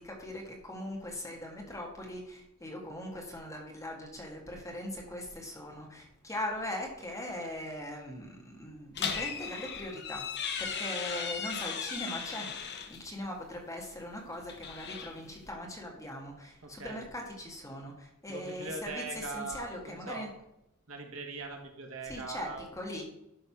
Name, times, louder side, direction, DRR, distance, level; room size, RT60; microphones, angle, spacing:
voice 1, 0.0-10.2 10.6-12.5 12.9-20.3 22.1-23.0, left 1 dB, 15° left, 0 dB, 1.8 m, -40 dB
sound 1, 8.9-13.0 14.3-15.5, left 6 dB, 50° left, 0.9 m, -37 dB
voice 2, 16.6-17.1 18.3-20.3 20.9-22.6, right 3 dB, 70° right, 2 dB, 1.6 m, -41 dB
11.5 x 4.0 x 6.0 m, 0.86 s
head